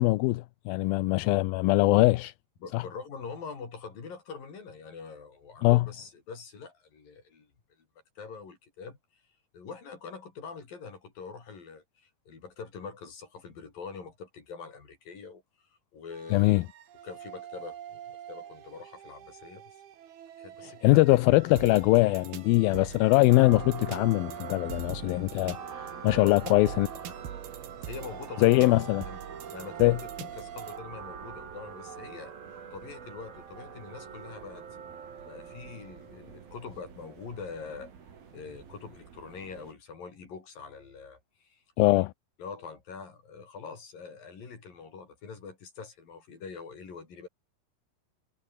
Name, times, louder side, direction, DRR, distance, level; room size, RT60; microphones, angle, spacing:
voice 1, 0.0-2.3 2.7-2.8 5.6-5.8 16.3-16.6 20.8-26.9 28.4-29.0 29.8-30.0 41.8-42.1, left 20 dB, 80° left, 2.4 m, -22 dB
voice 2, 2.6-7.5 8.2-9.0 9.5-15.4 15.9-16.6 17.0-18.0 18.3-19.8 20.4-21.2 26.1-26.5 27.8-28.7 29.1-29.2 29.5-29.9 30.3-32.3 32.7-34.7 35.2-37.9 38.3-42.1 42.4-47.3, left 5 dB, 65° left, 6.7 m, -44 dB
sound 1, 16.1-30.8, right 10 dB, 85° right, 4.1 m, -43 dB
sound 2, 23.3-39.7, right 7 dB, 70° right, 5.5 m, -45 dB
omnidirectional pair, 4.3 m